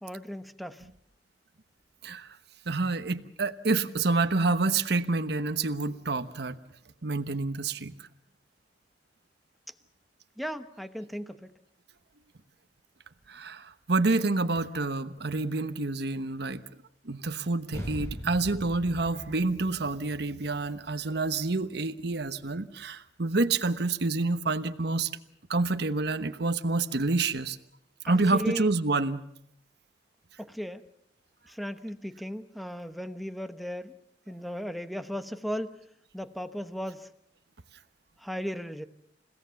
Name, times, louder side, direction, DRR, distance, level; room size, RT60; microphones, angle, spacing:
voice 1, 0.0-0.9 10.4-11.5 28.1-28.7 30.4-30.8 31.5-33.9 34.3-35.8 36.1-37.1 38.2-38.8, equal, ahead, 9 dB, 1.0 m, -36 dB
voice 2, 2.0-2.4 2.7-6.6 7.0-8.1 13.3-16.6 17.0-25.1 25.5-27.6 28.0-29.2, right 3 dB, 65° right, 10 dB, 1.1 m, -28 dB
sound 1, 17.7-22.5, equal, 15° left, 5.2 m, -42 dB
29.5 x 17.0 x 7.0 m, 0.70 s
head